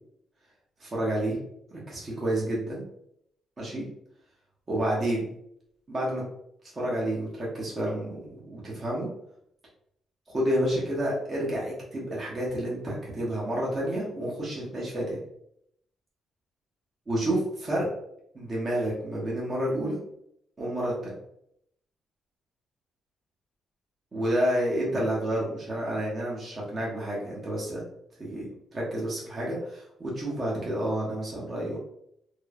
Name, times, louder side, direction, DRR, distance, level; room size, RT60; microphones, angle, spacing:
voice 1, 0.8-1.4 1.7-2.8 3.6-3.9 4.7-5.3 5.9-6.2 6.7-9.1 10.3-15.2 17.1-17.9 18.3-20.0 20.6-21.2 24.1-27.8 28.2-31.8, right 1 dB, 35° right, -5 dB, 0.9 m, -29 dB
3.0 x 2.0 x 2.3 m, 0.74 s
cardioid pair, 90°, 0 cm